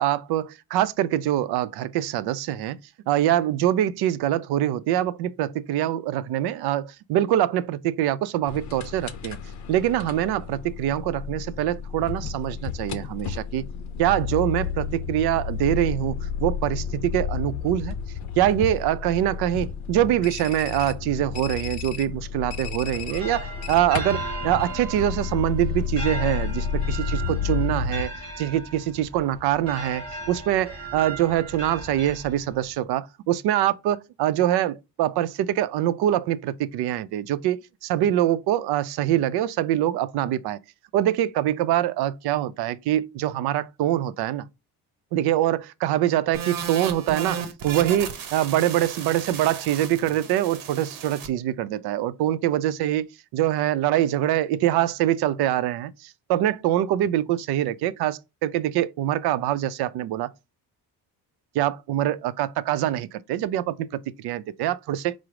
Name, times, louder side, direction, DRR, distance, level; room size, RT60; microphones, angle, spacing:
voice 1, 0.0-2.8 3.1-9.4 9.7-13.6 14.0-18.0 18.4-28.1 28.4-40.6 40.9-44.5 45.1-60.3 61.5-65.1, right 12 dB, 70° right, 0.5 m, -24 dB
sound 1, 8.5-28.1, left 7 dB, 45° left, 0.6 m, -31 dB
sound 2, 22.8-32.7, right 2 dB, 25° right, 2.4 m, -37 dB
sound 3, 46.3-51.3, right 7 dB, 55° right, 0.9 m, -35 dB
4.9 x 2.0 x 4.6 m
cardioid pair, 140°, 39 cm